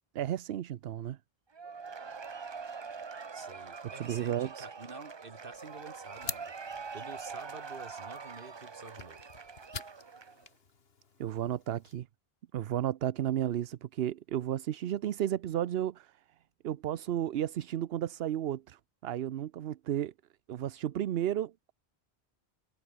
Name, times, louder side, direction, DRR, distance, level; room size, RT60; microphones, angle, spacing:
voice 1, 0.1-1.2 3.8-4.7 11.2-12.1 12.5-16.2 16.6-20.1 20.5-21.7, right 11 dB, 70° right, 0.8 m, -33 dB
Cheering / Applause / Crowd, 1.5-10.5, right 5 dB, 30° right, 0.6 m, -44 dB
voice 2, 3.3-6.5 6.9-9.2, right 3 dB, 55° right, 2.3 m, -49 dB
sound 1, 5.5-12.0, left 5 dB, 65° left, 1.8 m, -47 dB
omnidirectional pair, 1.1 m